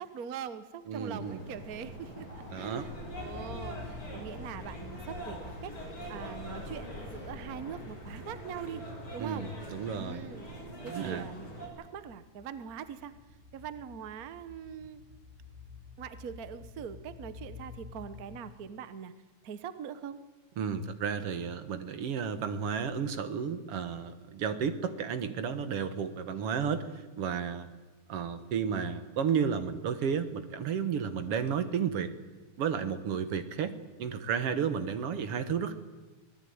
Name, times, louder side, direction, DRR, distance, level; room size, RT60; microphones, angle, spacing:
voice 1, 0.0-5.8 6.1-8.8 9.1-9.5 9.9-10.5 10.8-13.1 13.5-15.0 16.0-19.1 19.4-20.2, right 8 dB, 75° right, 12 dB, 0.8 m, -42 dB
voice 2, 0.9-1.4 2.5-2.9 9.2-10.3 10.8-11.3 20.6-27.7 28.1-32.1 32.6-35.7, right 7 dB, 60° right, 10 dB, 2.1 m, -32 dB
sound 1, 1.1-11.7, equal, 35° left, 7.2 m, -43 dB
sound 2, 3.1-18.8, left 5 dB, 25° right, 5.2 m, -50 dB
24.5 x 18.5 x 9.5 m, 1.2 s
omnidirectional pair, 3.3 m